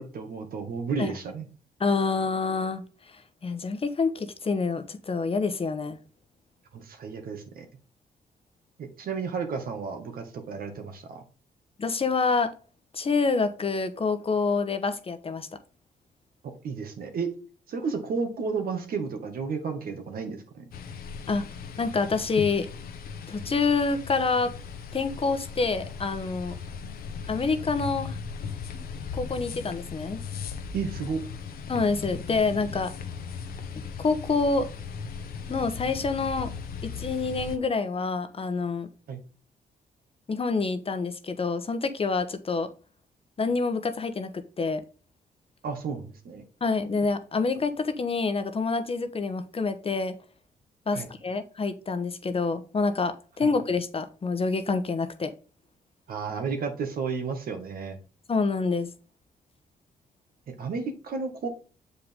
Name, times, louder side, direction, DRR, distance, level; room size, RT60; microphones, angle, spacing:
voice 1, 0.0-1.5 6.7-7.6 8.8-11.2 16.6-17.3 17.7-20.6 26.8-27.2 30.7-31.2 39.1-39.2 45.6-46.4 50.9-51.1 53.4-53.5 56.1-58.0 60.5-61.5, right 5 dB, 70° right, 1.8 m, -32 dB
voice 2, 1.8-2.8 3.4-6.0 11.8-12.5 12.9-15.5 21.3-21.4 21.8-22.7 23.3-24.5 24.9-26.6 27.3-28.2 28.7-28.8 29.1-30.2 31.7-32.9 34.0-34.7 35.5-36.5 36.8-38.9 40.3-42.7 43.4-44.8 46.6-50.1 50.9-55.3 58.3-58.9, left 4 dB, 40° left, 1.1 m, -27 dB
sound 1, 20.7-37.6, left 6 dB, 75° left, 1.1 m, -38 dB
7.0 x 5.1 x 3.7 m
cardioid pair, 75°, 16 cm